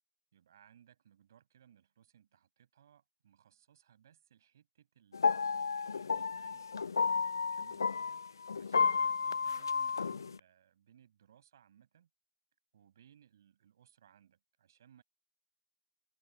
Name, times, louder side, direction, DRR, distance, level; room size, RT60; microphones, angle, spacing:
voice 1, 0.3-12.1 12.7-15.0, right 9 dB, 60° right, 7.6 m, -65 dB
sound 1, 5.1-10.4, left 5 dB, 75° left, 0.3 m, -32 dB
open air
figure-of-eight pair, 110°, 2 cm